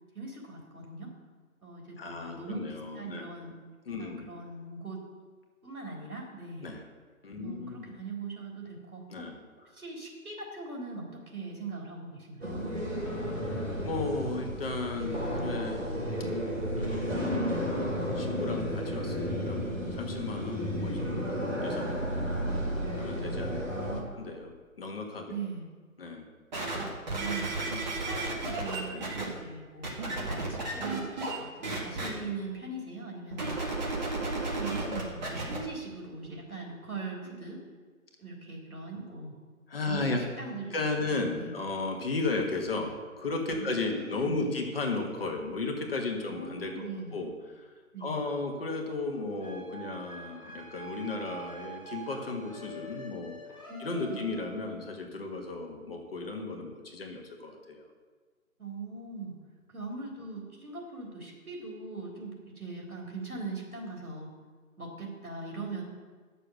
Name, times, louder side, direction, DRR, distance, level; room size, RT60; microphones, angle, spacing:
voice 1, 0.1-1.1 1.6-3.6 4.0-5.1 5.6-6.7 7.3-9.3 9.7-12.7 23.7-24.2 25.3-25.6 27.1-30.0 30.2-33.6 34.3-37.6 38.2-39.4 39.9-41.6 43.5-44.6 46.2-47.2 47.9-48.2 53.7-54.2 58.6-59.4 59.7-64.3 64.8-65.8, right 3 dB, 80° right, -1 dB, 3.5 m, -40 dB
voice 2, 2.0-3.3 3.9-4.3 6.6-6.8 7.2-7.9 9.1-9.4 13.8-15.9 16.8-17.1 18.2-19.6 19.9-22.2 23.0-24.5 24.8-25.4 26.0-26.3 28.9-29.1 30.0-30.3 32.3-32.4 39.7-40.2 40.7-47.3 47.5-47.7 48.0-53.3 53.8-57.8, left 3 dB, 40° left, 2 dB, 1.6 m, -35 dB
sound 1, 12.4-24.0, equal, 60° right, 3.0 m, -32 dB
sound 2, 26.5-29.2 29.8-31.4 31.6-32.1 33.3-35.6 36.2-36.3, right 2 dB, 30° right, 1.9 m, -33 dB
sound 3, 49.4-54.9, right 2 dB, 5° left, 2.0 m, -46 dB
10.0 x 6.8 x 6.4 m, 1.4 s
figure-of-eight pair, 150°, 43 cm